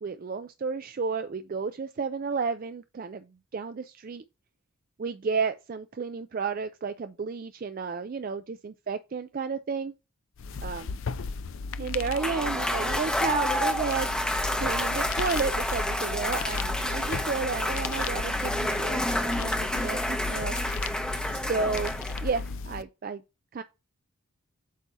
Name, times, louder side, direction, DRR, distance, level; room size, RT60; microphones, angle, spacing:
voice 1, 0.0-3.2 3.5-4.2 5.0-9.9 10.6-11.0 11.8-14.1 14.6-20.6 21.3-22.0 22.2-23.2 23.5-23.6, right 5 dB, 40° right, 0.3 m, -32 dB
sound 1, 10.4-22.8, left 4 dB, 65° left, 0.4 m, -35 dB
Cheering / Applause / Crowd, 12.0-22.5, left 1 dB, 5° left, 0.7 m, -29 dB
8.2 x 2.8 x 5.4 m
head